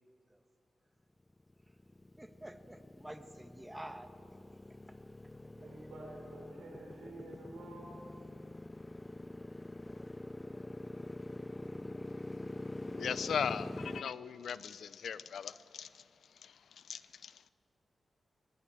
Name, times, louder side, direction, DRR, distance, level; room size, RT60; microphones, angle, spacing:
Motorcycle, 1.4-14.0, left 1 dB, 20° left, 0.5 m, -45 dB
voice 1, 2.2-4.1, right 1 dB, 15° right, 9 dB, 1.5 m, -48 dB
voice 2, 5.6-8.0 13.8-14.1, right 2 dB, 85° right, -1 dB, 3.7 m, -50 dB
voice 3, 12.8-16.0 16.3-17.4, left 7 dB, 80° left, 16 dB, 0.6 m, -39 dB
19.0 x 15.5 x 9.0 m, 2.5 s
supercardioid pair, 45°, 0 cm